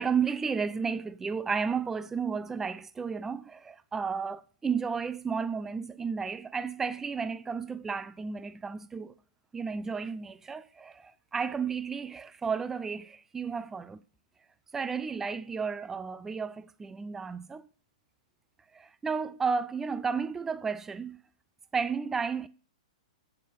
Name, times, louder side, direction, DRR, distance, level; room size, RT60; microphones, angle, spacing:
voice 1, 0.0-9.1 9.5-14.0 14.7-17.7 18.7-21.2 21.7-22.5, right 5 dB, 10° right, 0.4 m, -33 dB
8.8 x 7.5 x 8.0 m
figure-of-eight pair, 105°, 3 cm